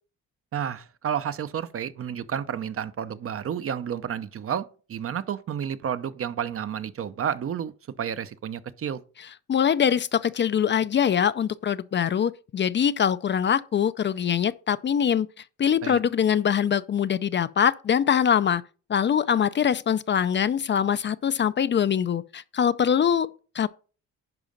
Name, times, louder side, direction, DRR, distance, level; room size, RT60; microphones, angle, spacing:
voice 1, 0.5-7.7 8.0-9.0 15.8-16.0, right 8 dB, 50° right, 0.8 m, -31 dB
voice 2, 9.5-15.3 15.6-18.6 18.9-23.7, left 8 dB, 40° left, 0.5 m, -23 dB
10.5 x 4.9 x 5.2 m
cardioid pair, 90°, 30 cm